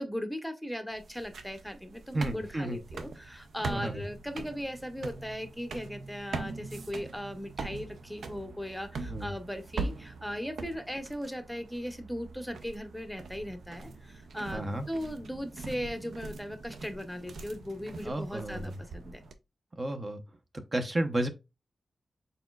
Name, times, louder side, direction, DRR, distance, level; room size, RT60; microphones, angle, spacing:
voice 1, 0.0-19.2, equal, ahead, 0.7 m, -38 dB
sound 1, 0.9-19.3, right 3 dB, 85° right, 0.5 m, -42 dB
voice 2, 2.1-2.8 3.7-4.0 9.1-9.3 14.5-14.9 18.0-18.7 19.8-20.2 20.7-21.3, right 1 dB, 35° right, 0.6 m, -32 dB
4.1 x 3.9 x 2.2 m
cardioid pair, 75°, 0 cm